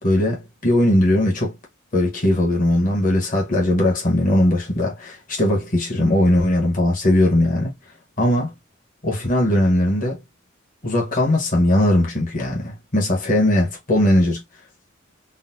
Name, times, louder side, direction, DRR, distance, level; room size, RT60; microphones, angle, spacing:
voice 1, 0.0-1.5 1.9-7.7 8.2-8.5 9.0-10.2 10.8-14.4, left 1 dB, 40° left, 1.1 m, -19 dB
3.9 x 2.0 x 2.6 m
head